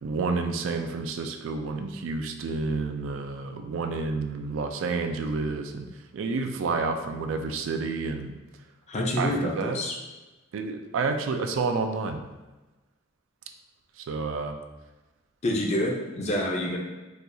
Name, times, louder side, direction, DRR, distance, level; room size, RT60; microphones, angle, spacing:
voice 1, 0.0-5.9 6.1-8.3 9.2-9.8 10.5-12.2 14.0-14.6, right 4 dB, 75° right, 5 dB, 0.3 m, -29 dB
voice 2, 8.9-9.9 15.4-16.8, left 1 dB, 35° left, 0 dB, 0.5 m, -27 dB
4.2 x 2.3 x 2.6 m, 1.1 s
head